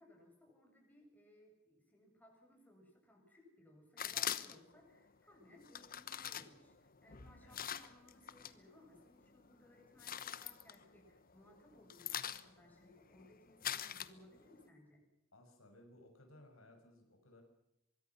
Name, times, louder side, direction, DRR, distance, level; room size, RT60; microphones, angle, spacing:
voice 1, 0.0-15.0, left 1 dB, 10° left, 1 dB, 7.7 m, -63 dB
sound 1, 4.0-4.8 5.6-8.6 8.9-9.5 9.8-11.3 11.6-14.6, left 10 dB, 45° left, 1.1 m, -43 dB
voice 2, 15.3-17.4, left 1 dB, 75° left, 4 dB, 5.8 m, -61 dB
24.5 x 23.0 x 5.9 m, 0.82 s
head